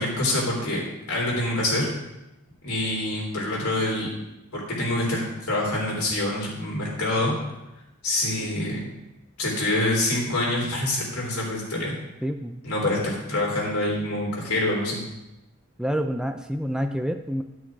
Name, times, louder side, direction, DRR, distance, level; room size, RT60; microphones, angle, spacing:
voice 1, 0.0-1.9 2.6-4.1 4.5-7.3 8.0-8.8 9.4-11.9 12.6-15.0, left 1 dB, 85° left, -3 dB, 3.6 m, -26 dB
voice 2, 12.2-12.6 15.8-17.4, equal, 5° right, 6 dB, 0.4 m, -28 dB
11.5 x 6.2 x 4.7 m, 0.94 s
head